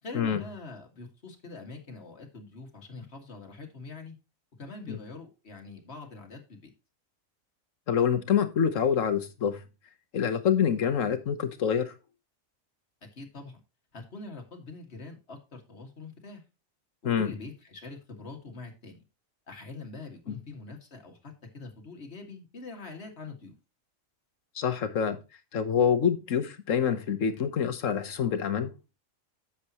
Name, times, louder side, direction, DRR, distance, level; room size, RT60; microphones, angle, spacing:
voice 1, 0.0-4.1 4.6-6.7 13.1-13.6 13.9-16.4 17.2-19.0 19.5-23.5, left 3 dB, 50° left, 2.2 m, -44 dB
voice 2, 7.9-9.6 10.1-11.9 17.0-17.3 20.3-20.4 24.5-25.2 25.5-28.7, left 7 dB, 70° left, 1.4 m, -26 dB
10.0 x 7.4 x 2.9 m
omnidirectional pair, 1.4 m